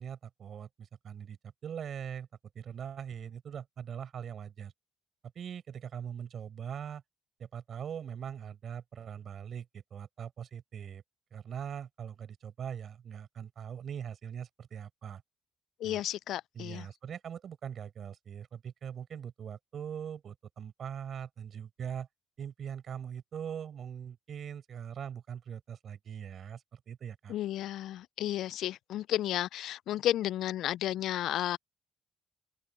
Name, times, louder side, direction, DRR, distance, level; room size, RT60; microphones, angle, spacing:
voice 1, 0.0-1.4 1.6-2.3 2.5-4.7 5.3-7.0 7.4-11.0 11.3-15.2 15.8-16.0 16.5-22.1 22.4-27.4, right 8 dB, 60° right, 7.7 m, -41 dB
voice 2, 15.8-16.9 27.3-31.6, left 13 dB, 70° left, 0.3 m, -32 dB
hypercardioid pair, 50°, 0 cm